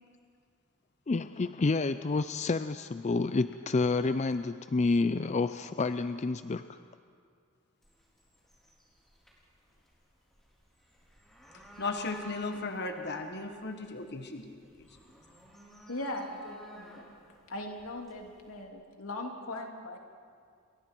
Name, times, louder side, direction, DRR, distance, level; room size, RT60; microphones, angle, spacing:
voice 1, 1.1-6.8, left 3 dB, 35° left, 11 dB, 0.4 m, -29 dB
sound 1, 7.8-18.6, equal, ahead, 4.5 m, -55 dB
voice 2, 11.8-14.9, left 3 dB, 55° left, 5 dB, 1.4 m, -36 dB
voice 3, 15.9-17.0 17.5-20.0, left 1 dB, 85° left, 1 dB, 2.9 m, -39 dB
29.5 x 24.5 x 4.6 m, 2.2 s
head